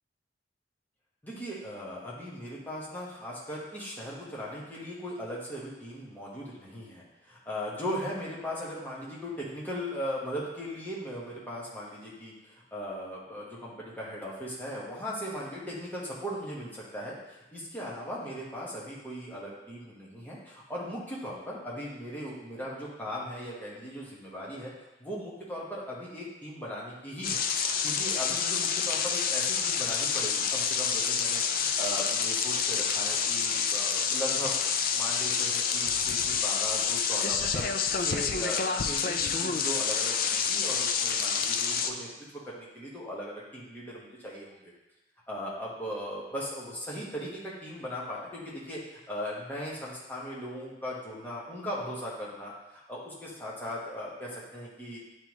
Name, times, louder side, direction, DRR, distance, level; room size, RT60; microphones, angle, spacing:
voice 1, 1.2-24.7 25.0-27.4 27.8-37.7 38.0-44.7 45.3-48.8 49.1-55.0, equal, 10° left, -6 dB, 1.3 m, -38 dB
sound 1, 27.2-41.9, left 6 dB, 50° left, 0.4 m, -28 dB
9.0 x 3.4 x 3.1 m, 1.0 s
head